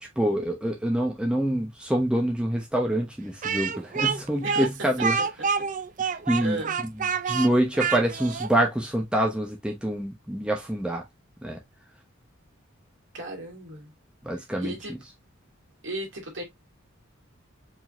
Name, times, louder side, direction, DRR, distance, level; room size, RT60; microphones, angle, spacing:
voice 1, 0.2-5.2 6.3-6.6 7.2-11.0 11.4-11.6 14.2-14.8, right 1 dB, 5° right, 0.9 m, -26 dB
Speech, 3.4-8.5, right 6 dB, 40° right, 0.4 m, -27 dB
voice 2, 6.0-6.8 13.1-13.9 14.6-14.9 15.8-16.4, right 2 dB, 60° right, 2.4 m, -35 dB
4.8 x 3.9 x 2.5 m
head